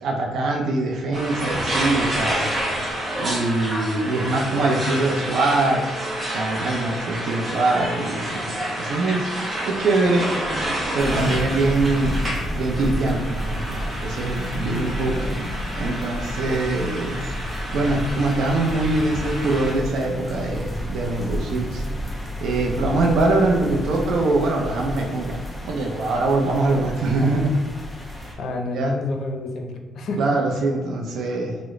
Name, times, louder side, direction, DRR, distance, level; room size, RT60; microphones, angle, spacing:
voice 1, 0.0-2.5 3.2-5.8 6.3-9.3 9.6-10.3 10.9-12.2 12.5-15.1 15.8-17.3 17.7-21.8 22.4-27.6 28.2-28.3 28.7-29.0 30.2-31.6, right 2 dB, 75° right, 0 dB, 0.4 m, -23 dB
sound 1, 1.1-19.7, right 1 dB, 30° right, 0.8 m, -29 dB
sound 2, 11.0-28.3, equal, 10° left, 0.8 m, -31 dB
voice 2, 11.1-11.5 14.7-15.2 28.4-30.3, left 2 dB, 65° left, 3 dB, 0.5 m, -30 dB
3.0 x 2.0 x 3.6 m, 1.3 s
cardioid pair, 90°, 0 cm